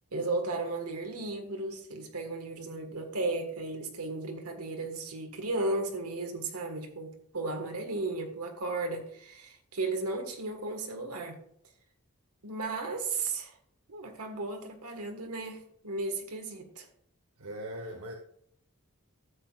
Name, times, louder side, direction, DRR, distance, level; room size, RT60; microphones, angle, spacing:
voice 1, 0.1-11.4 12.4-13.5 13.9-16.9, right 2 dB, 90° right, 1.6 m, -35 dB
voice 2, 17.4-18.1, equal, 70° right, 1.0 m, -39 dB
12.5 x 8.0 x 2.4 m
head